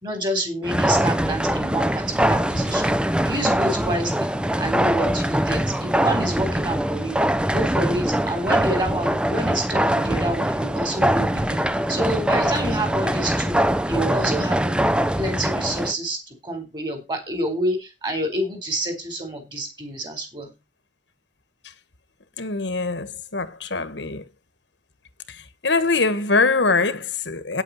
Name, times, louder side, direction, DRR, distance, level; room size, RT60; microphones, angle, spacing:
voice 1, 0.0-2.9 3.2-4.3 4.6-7.2 7.5-11.6 11.9-13.6 13.9-14.8 15.2-20.5, right 1 dB, 25° right, 4.1 m, -28 dB
sound 1, 0.6-15.9, right 1 dB, 5° right, 0.6 m, -22 dB
voice 2, 22.4-24.2 25.3-27.6, left 3 dB, 75° left, 1.4 m, -23 dB
9.4 x 8.5 x 5.5 m
head